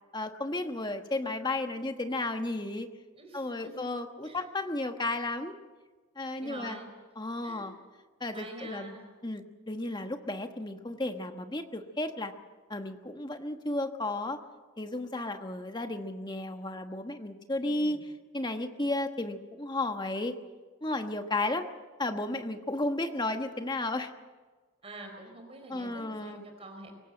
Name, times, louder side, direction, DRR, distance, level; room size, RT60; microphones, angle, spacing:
voice 1, 0.1-2.9 3.3-5.5 6.2-6.8 7.2-7.7 8.2-8.9 9.2-12.3 12.7-14.4 14.8-18.0 18.3-20.4 20.8-21.7 22.0-24.1 25.7-26.4, left 2 dB, 20° left, 6 dB, 1.3 m, -33 dB
voice 2, 3.1-3.8 4.2-4.4 6.4-6.9 7.4-7.7 8.3-9.0 17.6-18.0 24.8-26.9, right 2 dB, 30° right, 4 dB, 4.4 m, -46 dB
24.0 x 18.5 x 7.8 m, 1.4 s
head